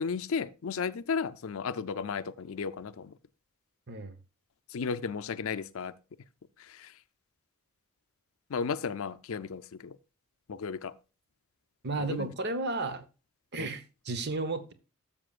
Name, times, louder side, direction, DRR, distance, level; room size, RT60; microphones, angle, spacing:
voice 1, 0.0-3.1 4.7-5.9 6.7-6.9 8.5-10.0 10.5-10.9 12.0-12.3 13.6-13.7, left 5 dB, 65° left, 0.5 m, -34 dB
voice 2, 11.8-13.0 13.5-14.7, right 3 dB, 50° right, 1.0 m, -33 dB
12.5 x 7.0 x 2.4 m
head